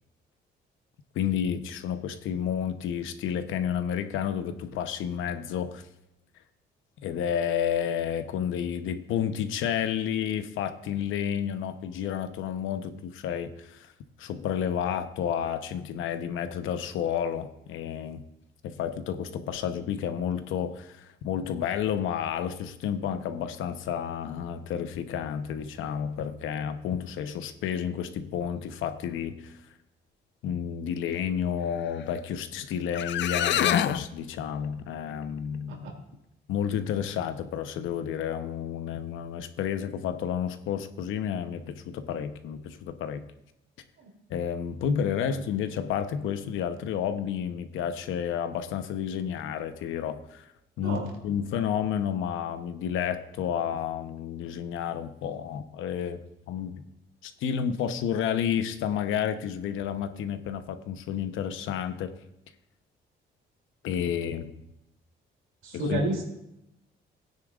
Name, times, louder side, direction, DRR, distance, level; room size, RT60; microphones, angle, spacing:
voice 1, 1.1-5.8 7.0-13.9 14.2-18.2 18.6-29.5 30.4-35.9 36.5-43.2 44.3-50.5 50.8-56.2 56.5-56.8 57.2-62.1 63.8-64.5 65.7-66.1, left 8 dB, 85° left, 9 dB, 0.8 m, -31 dB
sound 1, 32.6-32.7 32.9-34.1, left 10 dB, 65° left, 0.5 m, -25 dB
voice 2, 65.6-66.3, right 2 dB, 85° right, 1 dB, 2.9 m, -30 dB
17.5 x 9.7 x 2.4 m, 0.86 s
cardioid pair, 90°, 20 cm